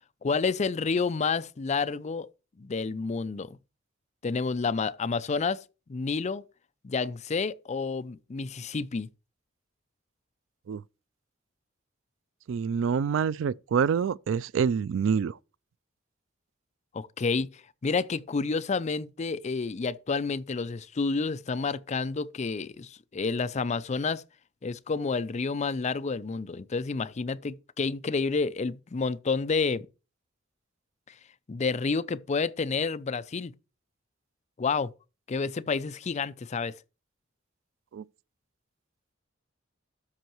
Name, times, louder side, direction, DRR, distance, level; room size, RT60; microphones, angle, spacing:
voice 1, 0.2-2.3 2.6-3.6 4.2-5.6 5.9-6.4 6.8-9.1 16.9-24.2 24.6-29.9 31.5-33.5 34.6-34.9 35.3-36.7, left 4 dB, 35° left, 0.4 m, -29 dB
voice 2, 12.5-15.4 37.9-38.0, right 6 dB, 70° right, 0.3 m, -26 dB
13.0 x 5.6 x 3.0 m
head